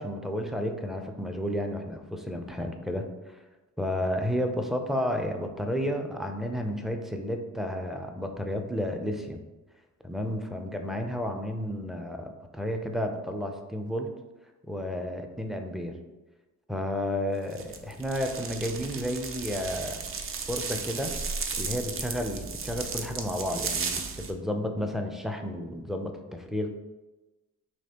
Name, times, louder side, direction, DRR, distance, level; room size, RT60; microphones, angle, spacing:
voice 1, 0.0-3.3 3.8-9.4 10.0-14.1 14.7-16.0 16.7-20.0 20.5-21.1 21.6-26.7, equal, ahead, 4 dB, 0.5 m, -32 dB
sound 1, 17.5-24.3, right 5 dB, 45° right, 0.6 m, -35 dB
5.3 x 3.1 x 2.9 m, 1.1 s
cardioid pair, 90°, 30 cm